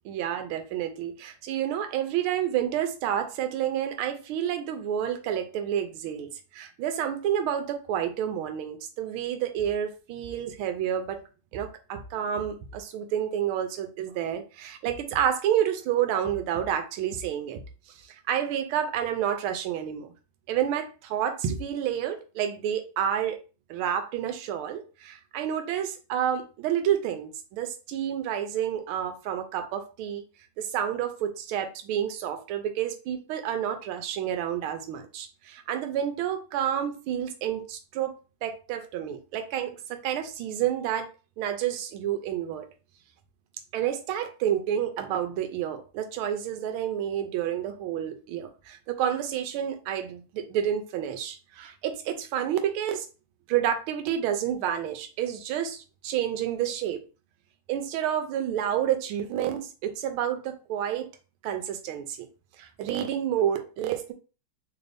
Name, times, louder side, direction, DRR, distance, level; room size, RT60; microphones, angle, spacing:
voice 1, 0.0-11.2 11.5-17.6 18.3-20.1 20.5-23.4 23.7-30.2 30.6-38.1 38.4-41.1 41.4-42.7 43.7-53.1 53.5-57.0 57.7-61.1 61.4-62.3 62.6-64.1, right 10 dB, 85° right, 1.5 m, -29 dB
3.9 x 2.6 x 3.3 m
omnidirectional pair, 2.3 m